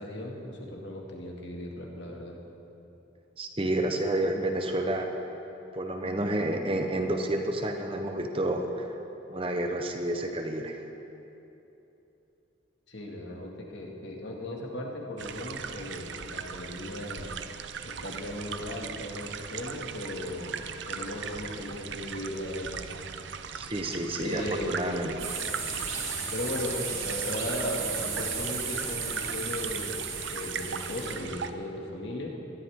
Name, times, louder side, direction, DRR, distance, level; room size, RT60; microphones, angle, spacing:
voice 1, 0.0-2.4 12.9-17.4 17.8-20.6 20.9-22.8 24.2-25.2 26.3-30.0 30.3-32.3, left 1 dB, 60° left, -1 dB, 2.0 m, -37 dB
voice 2, 3.4-5.1 5.7-8.9 9.3-10.8 23.5-25.1, right 1 dB, 25° right, 4 dB, 0.8 m, -30 dB
sound 1, 15.2-31.5, right 6 dB, 65° right, 0.6 m, -39 dB
sound 2, 25.2-31.2, right 5 dB, 85° right, 2.6 m, -34 dB
19.5 x 12.5 x 3.7 m, 2.9 s
head